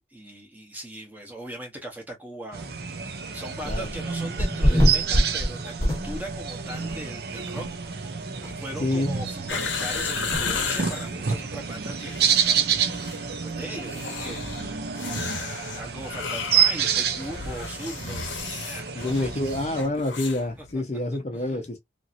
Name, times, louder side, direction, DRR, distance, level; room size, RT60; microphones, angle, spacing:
voice 1, 0.1-2.7 3.3-7.7 8.6-12.7 13.0-15.4 15.7-19.3 20.6-20.8, right 1 dB, 10° right, 0.8 m, -40 dB
sound 1, 2.5-19.8, right 7 dB, 55° right, 0.6 m, -29 dB
sound 2, 3.6-4.0 4.4-6.5 6.9-7.0 7.5-7.6 7.9-8.0 8.4-8.5 10.3-10.4, equal, 15° left, 0.9 m, -23 dB
voice 2, 8.8-9.1 19.0-21.8, left 1 dB, 35° left, 0.5 m, -27 dB
sound 3, 9.5-11.1 11.9-12.6 12.8-13.2 13.8-20.4 20.7-20.8, left 5 dB, 85° left, 0.8 m, -33 dB
2.9 x 2.7 x 2.5 m
head